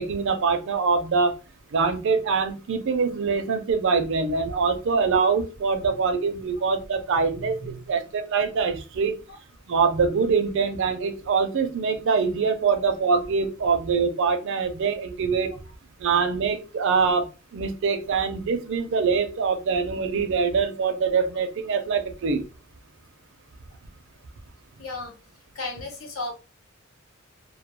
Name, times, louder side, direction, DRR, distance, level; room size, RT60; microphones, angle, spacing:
voice 1, 0.0-1.4 1.7-9.1 9.7-15.5 16.0-22.5, right 5 dB, 65° right, 8 dB, 0.4 m, -24 dB
voice 2, 7.1-7.8 9.3-9.4 13.6-13.7 24.8-25.1 25.5-26.3, left 2 dB, 75° left, 2 dB, 0.8 m, -35 dB
2.1 x 2.1 x 2.9 m, 0.32 s
head